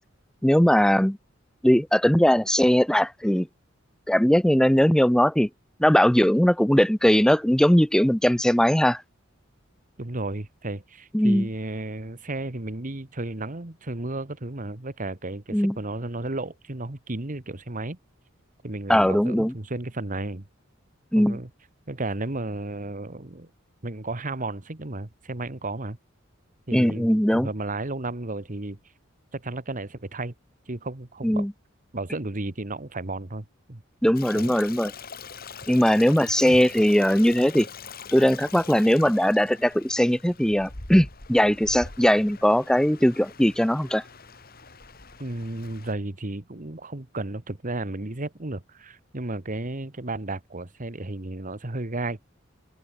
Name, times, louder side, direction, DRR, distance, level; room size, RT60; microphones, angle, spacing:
voice 1, 0.4-1.2 1.6-3.5 4.1-5.5 5.8-9.0 11.1-11.5 15.5-15.8 18.9-19.5 21.1-21.4 26.7-27.5 31.2-31.5 34.0-34.9 35.7-37.7 38.1-44.0, equal, 5° left, 0.6 m, -20 dB
voice 2, 10.0-18.0 18.6-20.5 21.1-21.5 21.9-23.5 23.8-26.0 26.7-28.8 29.3-30.3 30.7-31.5 31.9-33.8 34.3-34.5 36.4-36.6 45.2-52.2, right 2 dB, 40° right, 1.5 m, -33 dB
Stream, 34.1-45.9, left 5 dB, 50° left, 3.3 m, -43 dB
open air
head